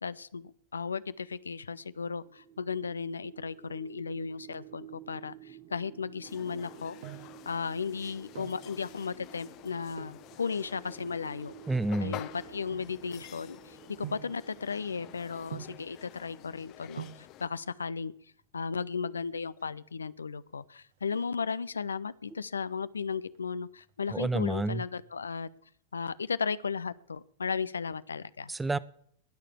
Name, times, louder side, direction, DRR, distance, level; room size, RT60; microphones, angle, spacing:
voice 1, 0.0-7.0 7.5-11.5 12.0-18.1 18.5-25.5 25.9-28.5, left 5 dB, 75° left, 17 dB, 0.5 m, -35 dB
sound 1, 1.8-16.7, right 14 dB, 40° right, 0.9 m, -52 dB
sound 2, 6.2-17.5, left 14 dB, 40° left, 0.9 m, -49 dB
sound 3, 7.0-7.4 8.1-8.7 9.9-10.3 11.0-13.4 14.0-14.4 15.5-15.9 16.7-16.8 17.0-17.3 18.4-19.0 19.3-19.4 19.6-19.7 20.1-20.5 20.8-21.9 22.3-22.7 23.1-24.2 24.5-24.6, right 10 dB, 60° right, 1.4 m, -46 dB
voice 2, 11.7-12.2 24.1-24.8 28.5-28.8, right 2 dB, 10° right, 19 dB, 0.6 m, -29 dB
20.0 x 6.6 x 7.3 m, 0.65 s
figure-of-eight pair, 90°, 0 cm